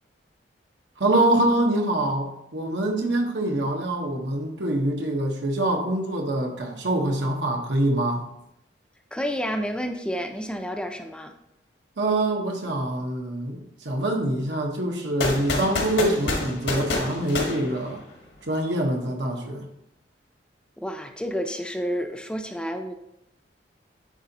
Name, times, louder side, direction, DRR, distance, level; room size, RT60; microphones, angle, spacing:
voice 1, 1.0-8.2 12.0-18.0 18.4-19.7, right 1 dB, 85° right, 1 dB, 1.1 m, -25 dB
voice 2, 9.1-11.3 20.8-22.9, equal, 5° left, 5 dB, 0.4 m, -30 dB
sound 1, 15.2-18.4, left 2 dB, 80° left, 1.6 m, -28 dB
9.8 x 3.9 x 2.8 m, 0.80 s
head